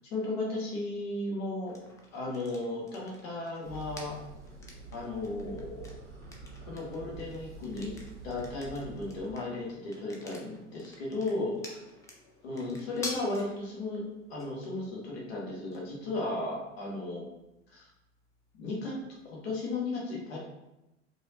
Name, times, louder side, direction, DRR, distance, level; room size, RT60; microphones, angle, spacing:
voice 1, 0.1-1.7 2.1-4.2 4.9-6.0 6.7-7.9 8.2-11.8 12.4-17.2 17.7-17.9 18.6-19.0 19.2-20.4, left 2 dB, 55° left, -3 dB, 1.1 m, -35 dB
sound 1, 1.7-19.4, left 2 dB, 10° left, 0.4 m, -50 dB
sound 2, 3.6-9.3, right 4 dB, 75° right, 0.8 m, -47 dB
4.7 x 2.7 x 2.7 m, 0.95 s
figure-of-eight pair, 85°, 37 cm